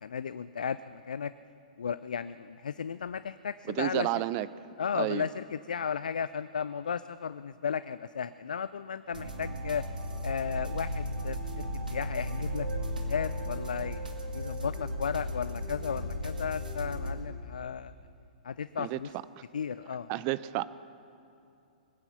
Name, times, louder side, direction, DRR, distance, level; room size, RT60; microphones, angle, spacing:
voice 1, 0.0-1.3 1.8-4.2 4.8-9.9 10.2-14.0 14.3-17.9 18.4-19.1 19.5-20.1, left 7 dB, 70° left, 14 dB, 0.4 m, -35 dB
voice 2, 3.8-4.5 5.0-5.3 18.8-19.0 19.4-19.5 20.1-20.7, right 16 dB, 35° right, 17 dB, 0.5 m, -30 dB
sound 1, 9.1-17.1, equal, 80° right, 2.0 m, -35 dB
21.0 x 9.7 x 7.0 m, 2.6 s
figure-of-eight pair, 115°, 5 cm